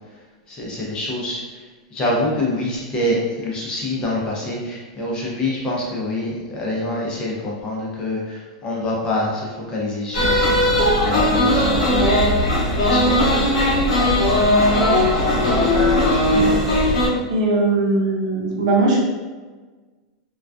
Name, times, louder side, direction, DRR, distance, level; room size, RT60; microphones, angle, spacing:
voice 1, 0.5-1.4 1.9-12.4 12.8-13.4 13.9-14.4, left 1 dB, 25° left, -4 dB, 0.6 m, -26 dB
sound 1, 10.1-17.1, left 1 dB, 90° left, 0.7 m, -17 dB
voice 2, 16.3-16.6 17.3-19.0, right 2 dB, 70° right, -2 dB, 0.7 m, -20 dB
2.3 x 2.2 x 2.4 m, 1.3 s
supercardioid pair, 135°, 3 cm